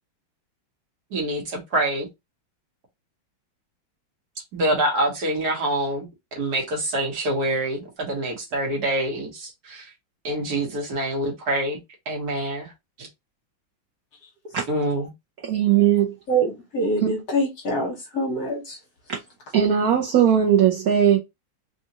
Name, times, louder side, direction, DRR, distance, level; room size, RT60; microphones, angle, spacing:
voice 1, 1.1-2.1 4.5-9.9 10.2-11.8 12.1-12.7 13.0-13.1 14.7-15.1, right 1 dB, 55° right, 1.5 m, -26 dB
voice 2, 15.4-16.1 17.0-17.1 19.1-19.2 19.5-21.2, right 9 dB, 75° right, 0.8 m, -19 dB
voice 3, 16.3-18.8, right 1 dB, 55° left, 1.3 m, -25 dB
3.7 x 2.4 x 2.8 m
omnidirectional pair, 2.2 m